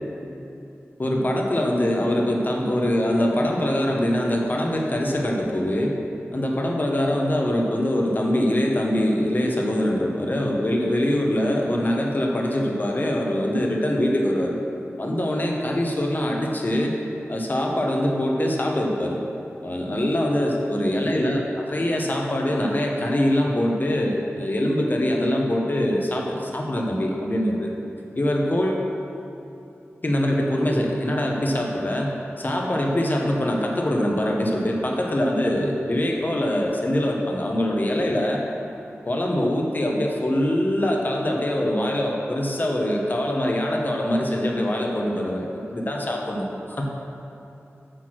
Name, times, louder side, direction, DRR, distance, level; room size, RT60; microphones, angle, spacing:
voice 1, 1.0-5.9 6.3-14.6 15.0-16.9 17.3-19.2 19.6-27.7 28.1-28.9 30.0-32.1 32.4-38.4 39.0-46.9, left 1 dB, 40° left, -1 dB, 1.2 m, -23 dB
6.8 x 6.2 x 6.2 m, 2.8 s
wide cardioid pair, 65°, 5 cm